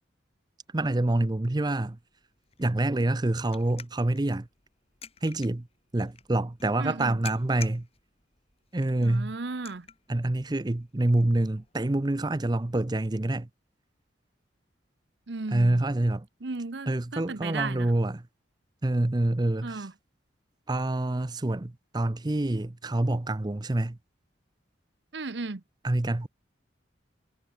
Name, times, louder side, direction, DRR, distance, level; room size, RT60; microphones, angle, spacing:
voice 1, 0.7-2.0 2.6-4.5 5.2-5.7 5.9-7.9 8.7-9.3 10.1-13.5 15.5-16.3 16.9-18.3 18.8-19.9 20.7-24.0 25.8-26.3, right 1 dB, 20° right, 0.6 m, -26 dB
sound 1, 1.8-13.1, left 7 dB, 30° left, 5.6 m, -51 dB
voice 2, 6.8-7.2 9.0-9.9 15.3-15.9 16.4-17.9 19.6-19.9 25.1-25.6, right 3 dB, 65° right, 0.9 m, -35 dB
head